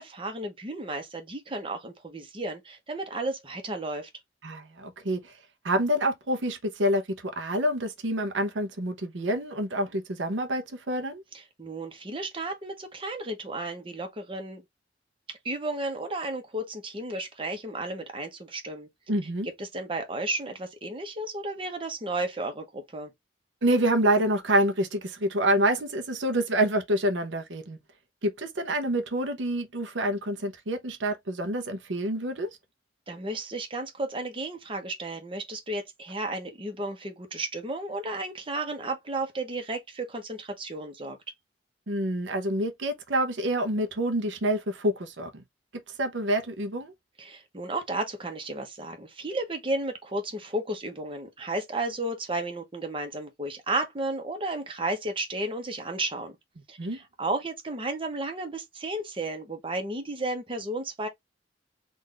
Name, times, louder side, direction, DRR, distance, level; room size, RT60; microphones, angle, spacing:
voice 1, 0.0-4.1 11.3-14.6 15.4-18.9 19.6-23.1 33.1-41.2 47.2-56.3 56.7-61.1, right 2 dB, 30° right, 1.0 m, -33 dB
voice 2, 4.4-5.3 5.6-11.2 19.1-19.5 23.6-27.8 28.2-32.5 41.9-45.4 46.0-46.9 56.8-57.0, right 1 dB, 90° right, 0.8 m, -27 dB
3.9 x 2.6 x 3.3 m
head